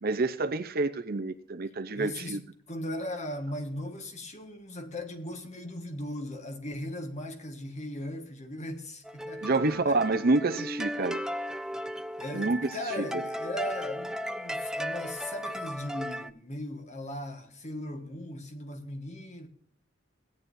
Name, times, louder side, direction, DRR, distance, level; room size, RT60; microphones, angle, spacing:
voice 1, 0.0-2.4 9.4-11.2 12.3-12.7 13.0-13.2, right 3 dB, 50° right, 0.7 m, -28 dB
voice 2, 1.9-2.4 2.7-10.0 12.2-19.5, left 1 dB, 40° left, 1.6 m, -38 dB
sound 1, 9.0-16.3, equal, 5° right, 0.3 m, -36 dB
17.0 x 9.4 x 2.7 m
head